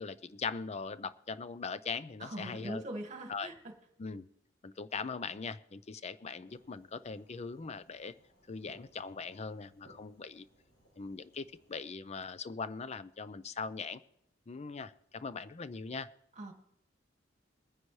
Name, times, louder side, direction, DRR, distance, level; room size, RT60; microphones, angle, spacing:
voice 1, 0.0-2.8 3.3-3.5 4.0-4.3 4.6-8.1 8.5-10.5 11.0-14.0 14.5-16.1, left 5 dB, 35° left, 15 dB, 0.5 m, -40 dB
voice 2, 2.2-3.7 16.4-16.5, right 1 dB, 40° right, 4 dB, 1.7 m, -42 dB
Fireworks, 6.5-12.0, right 1 dB, 65° left, 6.6 m, -64 dB
22.5 x 9.8 x 3.2 m, 0.77 s
head